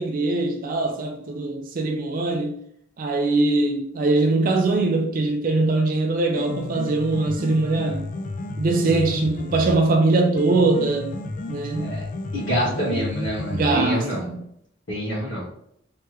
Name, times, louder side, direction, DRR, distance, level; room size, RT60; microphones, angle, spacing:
voice 1, 0.0-2.6 3.0-8.1 8.6-11.2 11.5-12.1 12.8-13.1 13.5-14.4, right 2 dB, 45° right, 0.4 m, -22 dB
Piano, 6.2-14.2, left 2 dB, 40° left, 0.4 m, -32 dB
voice 2, 12.3-14.3 14.9-15.5, right 1 dB, 80° left, 1.5 m, -27 dB
3.4 x 3.3 x 3.1 m
head